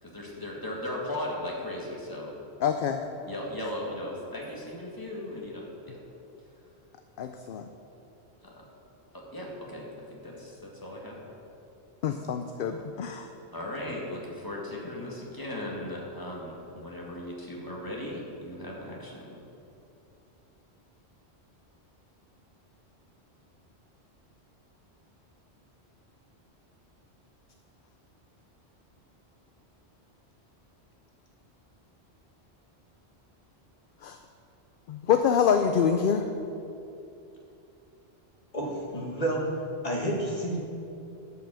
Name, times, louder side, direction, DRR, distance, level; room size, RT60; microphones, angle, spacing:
voice 1, 0.0-2.4 3.3-6.0 8.4-8.6 9.1-11.2 13.5-19.4, left 1 dB, 20° left, -3 dB, 2.0 m, -37 dB
voice 2, 2.6-3.0 7.2-7.6 12.0-13.3 34.0-34.2 34.9-36.3, left 7 dB, 60° left, 7 dB, 0.7 m, -26 dB
voice 3, 38.5-39.4 39.8-40.6, right 1 dB, 35° left, -3 dB, 2.0 m, -30 dB
11.5 x 5.8 x 7.5 m, 2.7 s
omnidirectional pair, 1.1 m